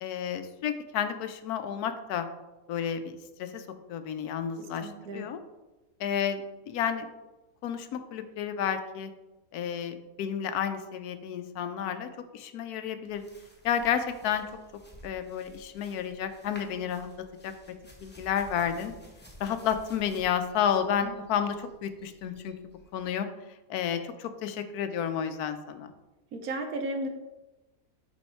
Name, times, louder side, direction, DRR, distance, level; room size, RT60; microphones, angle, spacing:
voice 1, 0.0-2.3 2.7-5.4 6.0-7.1 7.6-9.1 9.5-13.2 13.6-14.5 15.0-17.1 17.4-17.5 18.0-18.9 19.4-22.6 22.9-23.3 23.7-25.9, left 8 dB, 85° left, 10 dB, 1.1 m, -31 dB
voice 2, 4.6-5.3 21.0-21.1 26.3-27.1, right 1 dB, 70° right, 5 dB, 1.2 m, -35 dB
sound 1, 13.1-23.1, equal, 10° left, 0.7 m, -54 dB
7.1 x 3.5 x 4.4 m, 1.1 s
omnidirectional pair, 1.6 m